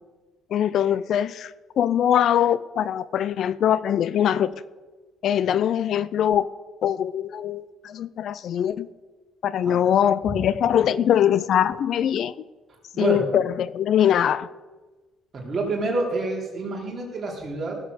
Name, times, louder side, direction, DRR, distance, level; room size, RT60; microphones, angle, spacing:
voice 1, 0.5-1.5 1.8-4.5 5.2-6.5 6.8-8.9 9.4-12.3 13.0-14.5, left 10 dB, 60° left, 17 dB, 0.4 m, -22 dB
voice 2, 12.9-13.3 15.3-17.8, right 2 dB, 35° right, -2 dB, 4.2 m, -27 dB
17.0 x 7.3 x 6.6 m, 1.3 s
cardioid pair, 110°, 0 cm